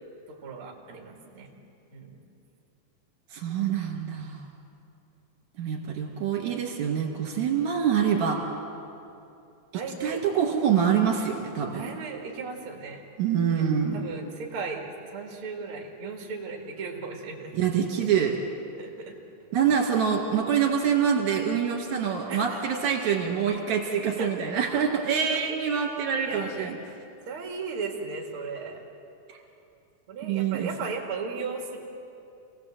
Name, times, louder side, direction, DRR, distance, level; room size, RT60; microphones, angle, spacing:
voice 1, 0.3-1.5 1.9-2.2 9.7-10.2 11.7-13.0 13.5-13.7 13.9-17.6 18.8-19.2 22.3-22.8 24.2-24.6 24.9-25.0 25.5-25.6 26.3-26.7 27.3-28.8 30.1-31.8, right 4 dB, 45° right, 0 dB, 2.7 m, -36 dB
voice 2, 3.3-4.4 5.6-8.4 10.0-11.9 13.2-14.0 17.5-18.4 19.5-26.8 29.3-29.4 30.2-30.7, right 7 dB, 60° right, 1 dB, 3.6 m, -25 dB
27.5 x 17.5 x 7.7 m, 2.7 s
omnidirectional pair, 3.9 m